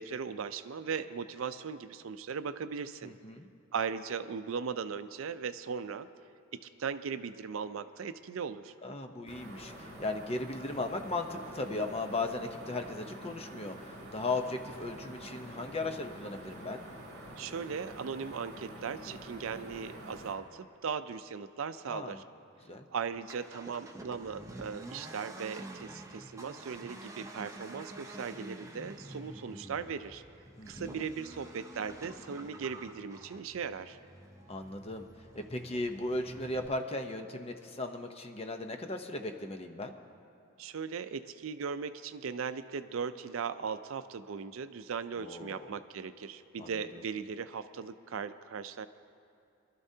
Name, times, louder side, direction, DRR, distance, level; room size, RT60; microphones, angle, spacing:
voice 1, 0.0-3.1 3.7-6.1 6.5-8.7 17.4-22.2 22.9-30.2 30.7-34.0 40.6-48.9, right 6 dB, 70° right, 12 dB, 0.4 m, -38 dB
voice 2, 3.0-3.5 8.8-16.8 21.9-22.2 22.6-22.9 30.6-30.9 34.5-35.1 35.3-40.0 45.2-45.7 46.6-46.7, left 2 dB, 30° left, 5 dB, 0.7 m, -37 dB
sound 1, 9.3-20.3, right 1 dB, 50° right, 2.4 m, -47 dB
Accelerating revving vroom, 23.1-36.7, right 1 dB, 15° right, 0.7 m, -48 dB
24.0 x 12.5 x 2.8 m, 2.7 s
head